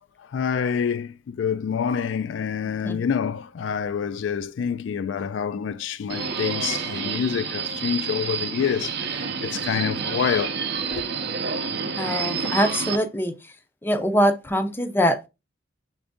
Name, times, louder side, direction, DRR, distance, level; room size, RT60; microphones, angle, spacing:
voice 1, 0.2-10.6 10.9-11.0, left 7 dB, 70° left, 0.3 m, -27 dB
Subway metro underground, 6.1-13.0, right 5 dB, 60° right, 0.6 m, -29 dB
voice 2, 12.0-13.5 13.8-15.3, equal, 10° left, 0.5 m, -23 dB
5.9 x 2.6 x 3.5 m
head